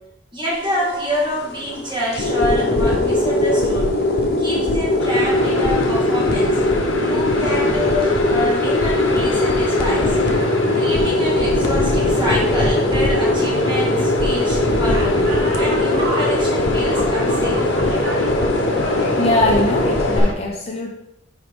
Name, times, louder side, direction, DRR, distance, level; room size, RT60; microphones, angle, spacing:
voice 1, 0.3-3.9 4.4-6.6 7.0-10.2 10.7-15.3 15.6-17.7, equal, 25° right, -6 dB, 2.4 m, -26 dB
sound 1, 0.5-20.2, left 2 dB, 55° left, 1.0 m, -20 dB
sound 2, 5.0-20.3, left 2 dB, 80° left, 1.0 m, -27 dB
sound 3, 9.8-19.8, right 2 dB, 60° right, 1.7 m, -35 dB
voice 2, 19.2-20.9, left 2 dB, 35° left, 0 dB, 0.8 m, -21 dB
10.0 x 3.7 x 3.7 m, 0.83 s
head